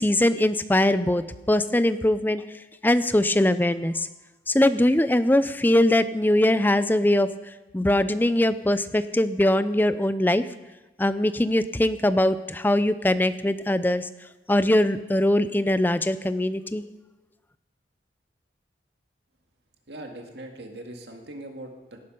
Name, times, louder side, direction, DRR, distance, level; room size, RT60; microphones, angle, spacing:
voice 1, 0.0-2.4 2.8-4.1 4.5-7.3 7.7-10.4 11.0-14.1 14.5-16.8, left 1 dB, 10° left, 13 dB, 0.5 m, -21 dB
voice 2, 19.9-22.0, right 1 dB, 70° right, 3 dB, 1.9 m, -40 dB
17.5 x 9.9 x 5.4 m, 1.1 s
head